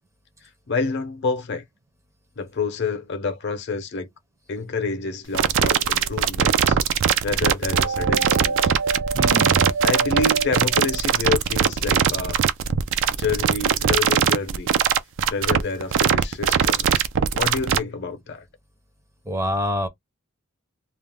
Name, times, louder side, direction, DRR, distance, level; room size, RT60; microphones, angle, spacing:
voice 1, 0.7-1.6 2.4-4.1 4.5-6.8 7.2-8.7 9.8-12.4 13.1-14.7 15.3-17.0 17.3-18.5, left 4 dB, 55° left, 0.7 m, -28 dB
sound 1, 5.3-17.8, right 8 dB, 65° right, 0.4 m, -20 dB
sound 2, 5.5-6.3 7.7-11.5, right 4 dB, 80° right, 0.8 m, -28 dB
voice 2, 9.1-9.7 19.3-19.9, equal, 15° right, 0.5 m, -26 dB
2.4 x 2.0 x 3.3 m
head